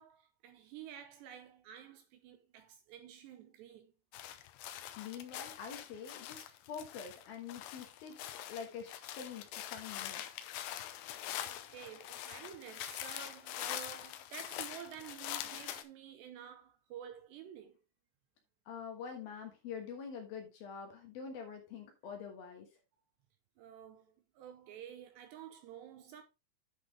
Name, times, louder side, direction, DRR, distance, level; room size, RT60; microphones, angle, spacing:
voice 1, 0.0-3.9 11.4-17.8 22.9-23.0 23.6-26.2, right 9 dB, 75° right, 2.8 m, -51 dB
sound 1, 4.1-15.8, left 12 dB, 80° left, 2.6 m, -44 dB
voice 2, 4.7-10.2 18.7-22.7, left 6 dB, 65° left, 2.6 m, -46 dB
10.5 x 5.8 x 3.4 m
omnidirectional pair, 5.6 m